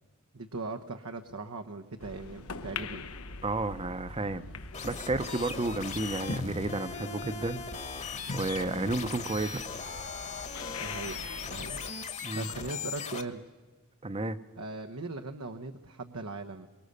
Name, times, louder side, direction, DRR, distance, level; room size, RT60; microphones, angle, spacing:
voice 1, 0.3-3.0 10.8-11.2 11.4-11.8 12.3-13.4 14.6-16.7, right 3 dB, 80° right, 5 dB, 1.1 m, -39 dB
sound 1, 2.0-11.9, left 3 dB, 80° left, 1.2 m, -42 dB
voice 2, 3.4-4.5 4.8-7.6 8.0-8.1 8.3-9.6 12.2-12.5 14.0-14.4, right 2 dB, 25° right, 13 dB, 0.8 m, -32 dB
sound 2, 4.7-13.2, left 5 dB, 35° left, 1.4 m, -39 dB
24.0 x 22.0 x 6.7 m, 1.3 s
head